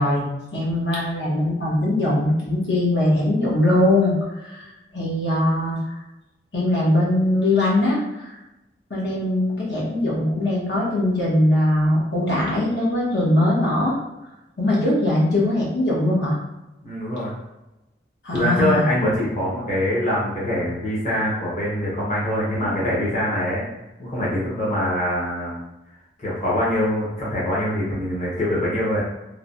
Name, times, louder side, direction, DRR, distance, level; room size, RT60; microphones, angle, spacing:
voice 1, 0.0-5.8 6.5-8.3 8.9-14.0 14.6-16.4 18.2-18.9, left 1 dB, 75° left, -5 dB, 1.0 m, -21 dB
voice 2, 16.8-17.3 18.3-23.6 24.0-25.6 26.2-29.0, left 1 dB, 40° left, -7 dB, 0.7 m, -24 dB
3.2 x 2.1 x 2.5 m, 0.97 s
head